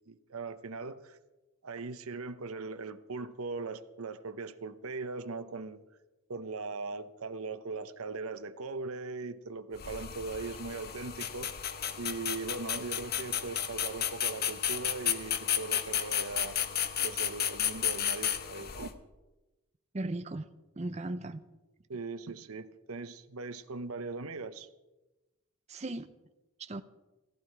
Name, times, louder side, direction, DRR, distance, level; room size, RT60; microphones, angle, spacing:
voice 1, 0.1-1.2 1.6-5.8 6.3-11.5 12.0-16.6 17.0-18.9 21.9-24.7, right 3 dB, 75° right, 0.8 m, -39 dB
sound 1, 9.8-18.9, left 10 dB, 45° left, 0.9 m, -33 dB
voice 2, 19.9-20.4 20.8-21.4 25.7-26.1 26.6-26.8, right 2 dB, 30° right, 0.6 m, -36 dB
15.0 x 15.0 x 4.7 m
head